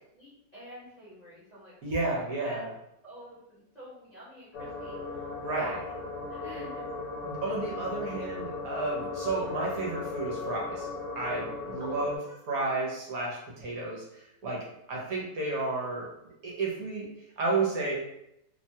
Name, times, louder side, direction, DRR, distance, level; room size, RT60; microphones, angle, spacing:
voice 1, 0.1-2.6 3.0-5.8 6.3-6.8 11.8-12.8, equal, 30° left, -10 dB, 0.9 m, -47 dB
voice 2, 1.8-2.7 5.4-5.7 7.2-10.9 11.1-12.2 12.5-16.1 16.4-17.1 17.4-18.0, right 3 dB, 65° right, -4 dB, 1.1 m, -32 dB
sound 1, 4.5-12.2, left 3 dB, 65° left, 1.1 m, -37 dB
2.9 x 2.2 x 2.7 m, 0.81 s
omnidirectional pair, 1.8 m